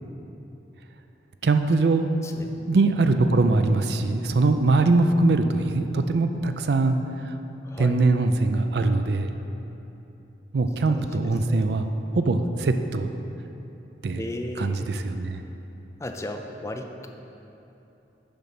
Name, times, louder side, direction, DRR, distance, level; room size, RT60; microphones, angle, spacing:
voice 1, 1.4-2.1 2.6-7.0 7.2-7.3 7.8-9.3 10.5-11.9 12.1-13.1 14.0-14.2 14.6-15.4, right 3 dB, 65° right, 8 dB, 0.4 m, -22 dB
voice 2, 2.2-2.7 7.6-7.9 10.9-11.2 11.5-11.7 14.1-14.9 16.0-17.1, left 1 dB, 15° left, 4 dB, 0.4 m, -35 dB
6.9 x 5.2 x 5.9 m, 2.9 s
head